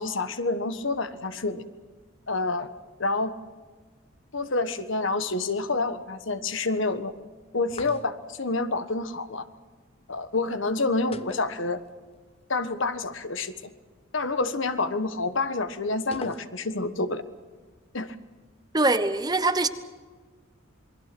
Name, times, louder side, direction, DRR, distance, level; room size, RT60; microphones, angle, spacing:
voice 1, 0.0-1.6 2.3-2.7 3.0-3.3 4.3-7.1 7.5-9.4 10.1-11.8 12.5-13.5 14.1-17.2 17.9-18.2, left 3 dB, 70° left, 1.4 m, -28 dB
sound 1, 7.7-8.4 11.1-12.2 12.4-12.5 16.1-16.9, left 3 dB, 30° left, 0.6 m, -42 dB
voice 2, 18.7-19.7, right 2 dB, 20° right, 0.9 m, -23 dB
28.0 x 21.0 x 6.0 m
head